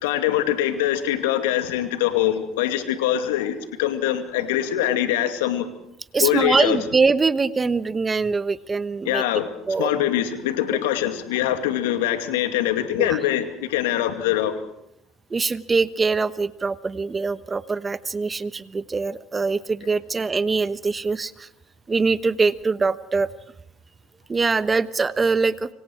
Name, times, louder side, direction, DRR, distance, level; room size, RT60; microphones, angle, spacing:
voice 1, 0.0-5.7 6.2-6.8 9.0-9.5 9.8-14.6, left 12 dB, 80° left, 7 dB, 2.4 m, -23 dB
voice 2, 6.1-9.2 9.7-9.9 13.0-13.2 15.3-21.5 21.9-23.3 24.3-25.7, right 4 dB, 25° right, 14 dB, 1.1 m, -23 dB
25.5 x 25.0 x 4.7 m, 0.76 s
hypercardioid pair, 70°, 0 cm